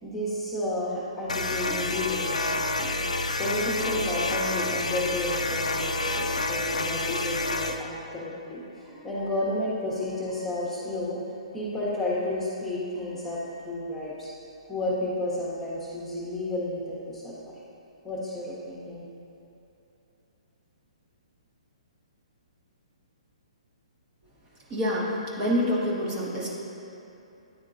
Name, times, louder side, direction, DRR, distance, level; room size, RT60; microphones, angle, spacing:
voice 1, 0.0-2.9 3.4-14.3 14.7-17.5 18.0-19.0, left 1 dB, 5° left, -8 dB, 1.2 m, -32 dB
sound 1, 1.3-7.8, left 2 dB, 85° left, 0.4 m, -28 dB
voice 2, 24.7-26.5, equal, 30° right, -6 dB, 1.4 m, -27 dB
9.9 x 3.6 x 2.7 m, 2.9 s
figure-of-eight pair, 125°, 4 cm